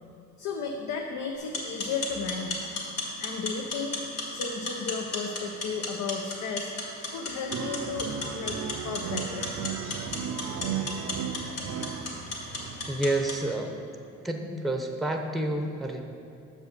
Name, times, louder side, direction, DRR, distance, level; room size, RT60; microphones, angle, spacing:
voice 1, 0.4-2.7 3.2-4.0 4.3-6.7 7.1-9.5, left 5 dB, 70° left, 2 dB, 0.7 m, -34 dB
sound 1, 1.4-13.4, left 3 dB, 55° left, 2.0 m, -36 dB
sound 2, 7.5-12.9, right 7 dB, 65° right, 0.6 m, -35 dB
voice 2, 12.9-13.7 14.2-16.0, right 1 dB, ahead, 3 dB, 0.7 m, -29 dB
6.5 x 5.3 x 6.6 m, 2.5 s
cardioid pair, 90°, 30 cm